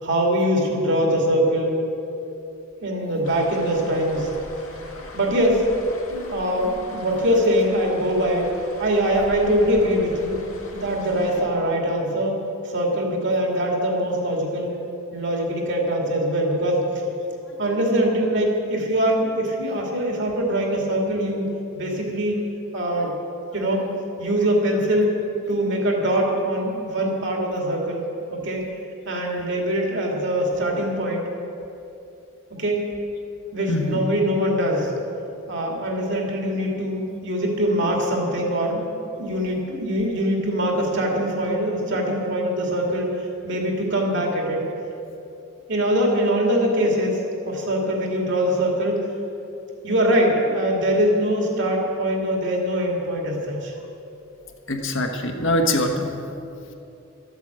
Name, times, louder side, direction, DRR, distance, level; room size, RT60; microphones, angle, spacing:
voice 1, 0.0-1.7 2.8-4.3 5.1-5.6 6.1-8.5 8.8-10.3 10.7-12.3 12.6-14.7 15.1-16.9 17.6-21.5 21.7-22.5 22.7-23.1 23.5-23.9 24.2-25.2 25.5-28.0 28.3-28.6 29.1-31.2 32.6-32.9 33.5-34.9 35.5-38.9 39.2-43.1 43.4-44.7 45.7-47.2 47.4-49.0 49.8-53.7, equal, 60° right, 0 dB, 2.5 m, -22 dB
sound 1, 3.2-11.4, left 1 dB, 80° left, 2.0 m, -41 dB
voice 2, 33.7-34.0 54.7-56.2 56.7-56.8, left 1 dB, 65° left, 3 dB, 1.4 m, -23 dB
13.0 x 8.2 x 8.0 m, 2.8 s
head